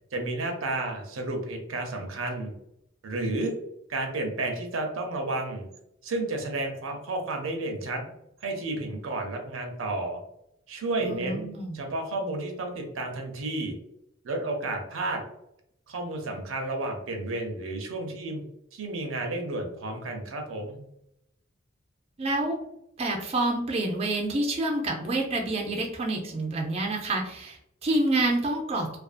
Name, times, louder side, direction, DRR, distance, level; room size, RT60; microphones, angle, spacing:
voice 1, 0.1-2.5 3.0-3.5 3.9-5.7 6.0-8.1 8.4-10.2 10.7-13.7 14.2-15.2 15.9-18.4 18.7-20.8, right 2 dB, 80° right, 3 dB, 0.6 m, -31 dB
voice 2, 11.0-11.8 22.2-22.6 23.0-29.0, right 2 dB, 30° right, 0 dB, 0.4 m, -28 dB
2.5 x 2.3 x 2.4 m, 0.78 s
head